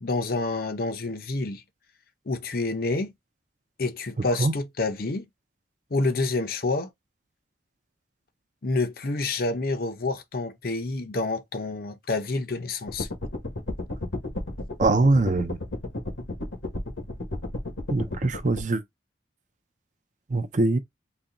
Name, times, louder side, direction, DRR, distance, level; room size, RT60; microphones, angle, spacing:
voice 1, 0.0-1.6 2.3-3.1 3.8-5.2 5.9-6.9 8.6-13.1, left 3 dB, 50° left, 0.6 m, -28 dB
sound 1, 12.9-18.6, left 2 dB, 80° left, 1.3 m, -33 dB
voice 2, 14.8-15.6 17.9-18.8 20.3-20.8, right 2 dB, 40° right, 0.5 m, -22 dB
4.0 x 2.3 x 3.7 m
head